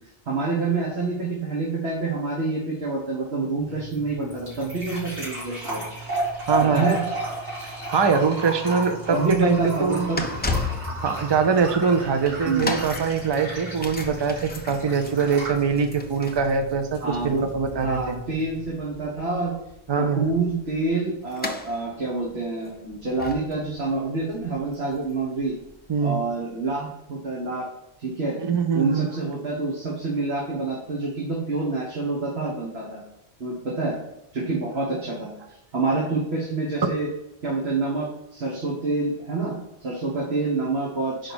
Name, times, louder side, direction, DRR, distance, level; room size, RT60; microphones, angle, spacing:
voice 1, 0.3-5.8 6.7-7.0 9.1-10.2 12.4-12.7 17.0-17.5 17.7-19.5 20.0-25.5 26.0-27.7 28.0-28.4 28.7-33.0 33.4-34.0 34.3-35.3 35.7-37.1 37.4-39.5 39.8-41.3, right 3 dB, 70° right, -4 dB, 1.7 m, -27 dB
sound 1, 3.6-18.6, right 2 dB, 85° right, 2.7 m, -34 dB
voice 2, 6.5-6.9 7.9-10.1 11.0-18.2 19.9-20.3 25.9-26.2 28.4-29.1, right 5 dB, 30° right, 7 dB, 0.6 m, -23 dB
sound 2, 9.1-26.1 26.7-26.8, left 3 dB, 15° left, 0.4 m, -36 dB
5.0 x 5.0 x 6.1 m, 0.85 s
omnidirectional pair, 1.1 m